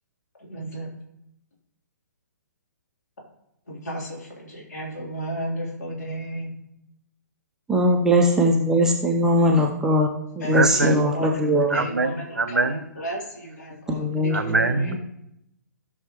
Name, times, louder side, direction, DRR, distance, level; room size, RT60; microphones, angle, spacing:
voice 1, 0.5-0.9 3.7-6.5 10.4-11.3 11.5-12.1 12.5-12.6 13.0-14.3, right 1 dB, 60° left, -3 dB, 3.7 m, -33 dB
voice 2, 7.7-10.1 10.4-11.8 13.9-14.5, equal, 5° right, 0 dB, 0.7 m, -20 dB
voice 3, 10.5-11.1 11.4-12.9 14.3-15.0, right 3 dB, 75° right, 10 dB, 0.9 m, -23 dB
16.5 x 6.2 x 3.2 m, 0.81 s
figure-of-eight pair, 125°, 10 cm